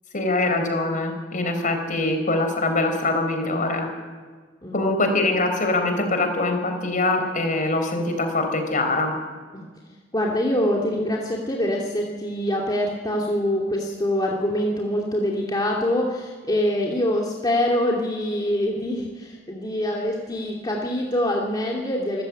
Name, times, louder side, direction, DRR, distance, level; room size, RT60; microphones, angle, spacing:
voice 1, 0.1-3.9 4.7-9.1, left 2 dB, 45° left, 6 dB, 4.4 m, -23 dB
voice 2, 10.1-22.2, left 1 dB, 20° left, -2 dB, 2.6 m, -24 dB
26.0 x 15.0 x 8.6 m, 1.5 s
head